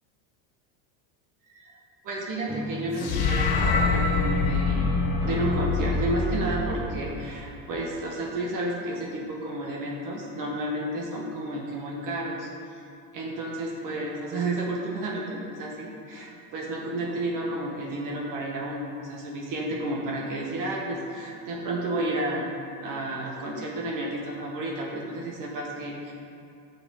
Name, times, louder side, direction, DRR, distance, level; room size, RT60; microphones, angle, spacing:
voice 1, 2.0-12.8 13.1-22.5 22.8-26.1, right 1 dB, 40° right, -1 dB, 1.6 m, -31 dB
sound 1, 2.5-8.4, equal, 10° right, 0.4 m, -40 dB
sound 2, 3.0-7.3, left 4 dB, 60° left, 1.9 m, -25 dB
10.5 x 7.1 x 4.9 m, 2.6 s
supercardioid pair, 140°, 49 cm